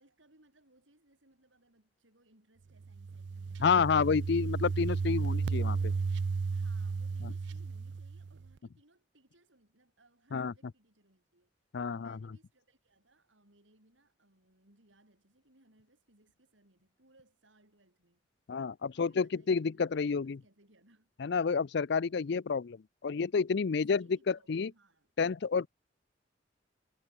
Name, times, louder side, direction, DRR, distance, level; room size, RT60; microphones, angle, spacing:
voice 1, 0.0-4.2 5.2-5.5 6.5-11.5 11.9-18.2 18.6-21.1 23.7-25.1, right 1 dB, 85° right, 7.8 m, -67 dB
sound 1, 2.8-8.5, right 4 dB, 65° right, 0.4 m, -33 dB
voice 2, 3.6-5.9 7.2-7.3 10.3-10.5 11.7-12.2 18.5-20.4 21.2-24.7 25.2-25.7, left 5 dB, 60° left, 0.5 m, -30 dB
head